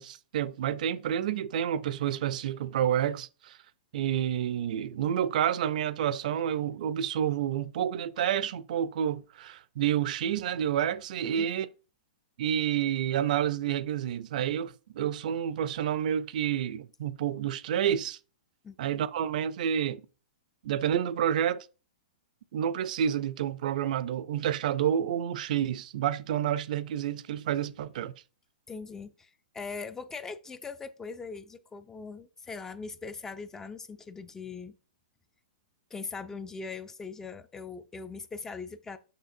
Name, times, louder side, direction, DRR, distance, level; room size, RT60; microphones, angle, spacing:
voice 1, 0.0-3.6 3.9-11.7 12.4-18.2 18.8-20.0 20.6-21.6 22.5-28.1, right 10 dB, 55° right, 0.5 m, -29 dB
voice 2, 28.7-34.7 35.9-39.0, left 4 dB, 10° left, 0.3 m, -41 dB
6.6 x 6.3 x 2.7 m
hypercardioid pair, 155°, 5 cm